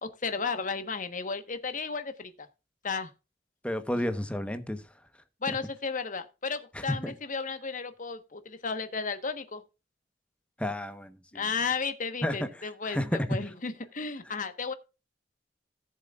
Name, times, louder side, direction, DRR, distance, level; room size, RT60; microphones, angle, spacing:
voice 1, 0.0-2.5 2.8-3.1 5.4-9.6 11.3-14.7, left 5 dB, 45° left, 1.3 m, -34 dB
voice 2, 3.6-4.8 5.5-5.6 6.7-7.1 10.6-11.4 12.2-12.4 12.9-13.4, left 1 dB, 5° left, 1.1 m, -31 dB
17.5 x 7.3 x 2.5 m
head